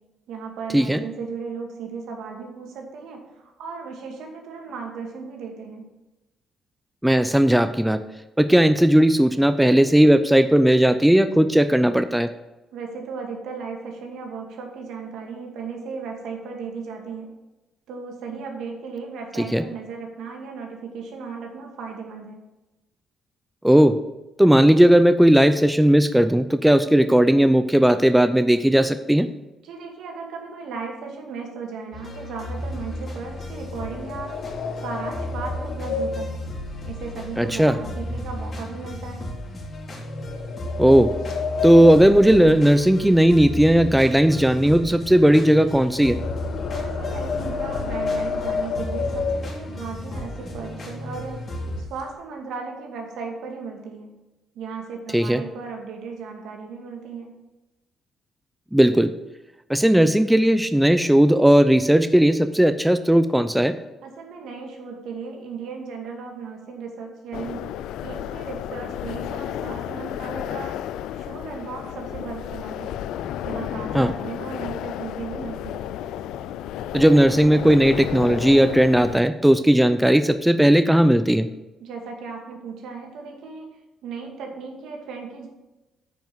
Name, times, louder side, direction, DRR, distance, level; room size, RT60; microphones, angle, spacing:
voice 1, 0.3-5.9 12.7-17.3 17.9-22.4 29.6-34.4 34.8-36.4 36.8-39.3 46.7-51.5 51.8-54.1 54.5-57.3 64.0-67.7 68.0-70.8 71.1-73.0 73.4-75.9 81.8-83.7 84.0-85.5, right 5 dB, 80° right, 2 dB, 2.3 m, -36 dB
voice 2, 7.0-8.0 8.4-12.3 19.5-19.6 23.6-24.0 24.4-29.3 37.4-37.8 40.8-41.1 41.6-46.2 55.1-55.4 58.7-59.1 59.7-63.7 73.9-74.1 76.9-81.5, right 1 dB, 5° right, 11 dB, 0.6 m, -16 dB
sound 1, 31.9-51.8, left 1 dB, 45° left, 3.1 m, -34 dB
sound 2, 32.6-37.9 38.2-38.6 39.1-39.2 40.0-43.3 43.6-49.9 50.5-50.6 50.9-51.1 51.5-52.1, left 5 dB, 75° left, 1.2 m, -31 dB
sound 3, 67.3-79.2, left 11 dB, 90° left, 0.4 m, -32 dB
9.2 x 5.4 x 7.7 m, 1.0 s
cardioid pair, 90°, 0 cm